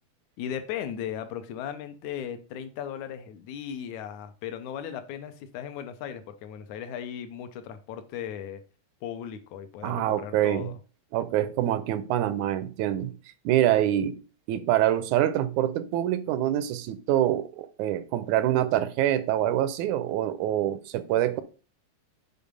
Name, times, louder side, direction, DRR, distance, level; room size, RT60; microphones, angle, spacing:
voice 1, 0.4-8.6 9.0-10.8, left 9 dB, 80° left, 2.2 m, -37 dB
voice 2, 9.8-10.7 11.1-13.1 13.5-14.2 14.5-21.4, right 12 dB, 90° right, 2.1 m, -25 dB
7.0 x 4.6 x 5.2 m
omnidirectional pair, 3.4 m